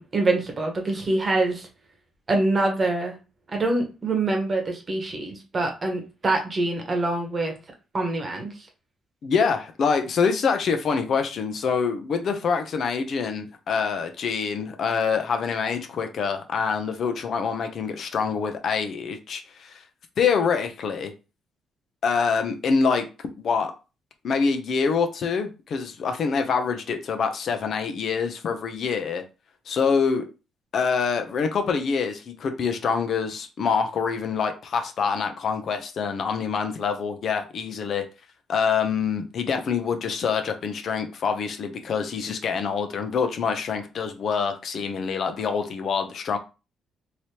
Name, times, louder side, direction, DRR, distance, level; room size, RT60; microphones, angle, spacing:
voice 1, 0.0-1.7 2.3-3.2 3.5-7.5 7.9-8.5, right 2 dB, 35° right, 1.1 m, -25 dB
voice 2, 9.2-19.8 20.2-21.1 22.0-23.1 23.4-23.7 24.2-29.2 29.7-30.3 30.7-38.0 38.5-46.4, left 5 dB, 60° left, 0.6 m, -25 dB
3.2 x 2.8 x 2.9 m
cardioid pair, 90°, 0 cm